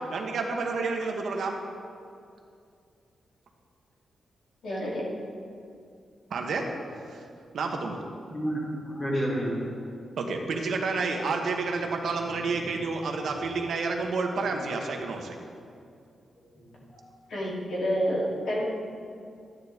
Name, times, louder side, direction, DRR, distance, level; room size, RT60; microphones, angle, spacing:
voice 1, 0.1-1.5 6.3-6.6 6.9-7.2 7.5-8.0 10.2-15.4, right 4 dB, 65° right, 2 dB, 1.2 m, -30 dB
voice 2, 4.6-5.0 17.3-18.6, equal, 70° left, -6 dB, 3.0 m, -28 dB
voice 3, 8.3-9.7 12.3-12.8 13.3-13.4 14.4-14.5 16.5-17.0, equal, 25° left, -5 dB, 3.0 m, -32 dB
13.0 x 10.0 x 3.6 m, 2.4 s
wide cardioid pair, 160°, 0 cm